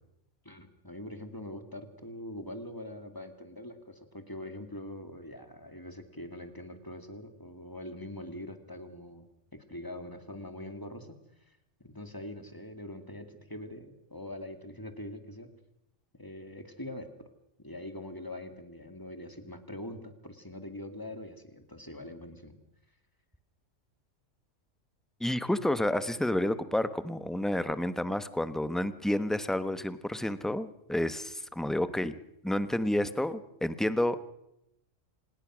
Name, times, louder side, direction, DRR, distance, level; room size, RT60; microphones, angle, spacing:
voice 1, 0.4-9.3 9.5-15.5 16.1-17.3 17.6-22.6 27.6-27.8, left 1 dB, 15° left, 8 dB, 2.3 m, -43 dB
voice 2, 25.2-32.2 32.4-34.2, left 1 dB, ahead, 12 dB, 0.9 m, -30 dB
26.5 x 20.0 x 6.3 m, 0.83 s
omnidirectional pair, 1.3 m